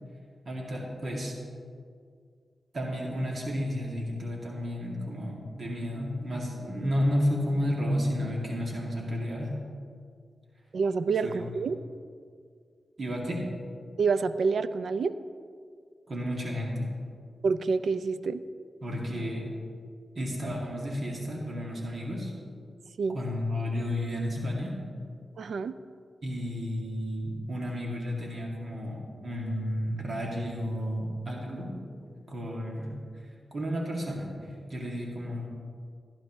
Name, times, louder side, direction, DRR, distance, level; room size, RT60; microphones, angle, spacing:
voice 1, 0.5-1.3 2.7-9.6 11.2-11.3 13.0-13.5 16.1-16.9 18.8-19.5 20.2-22.3 23.1-24.8 26.2-31.8 32.3-35.5, equal, 55° right, -2 dB, 2.2 m, -32 dB
voice 2, 10.7-11.8 14.0-15.2 17.4-18.4 23.0-23.2 25.4-25.8, right 4 dB, 75° right, 13 dB, 0.5 m, -27 dB
16.0 x 11.5 x 3.1 m, 2.1 s
cardioid pair, 70°, 0 cm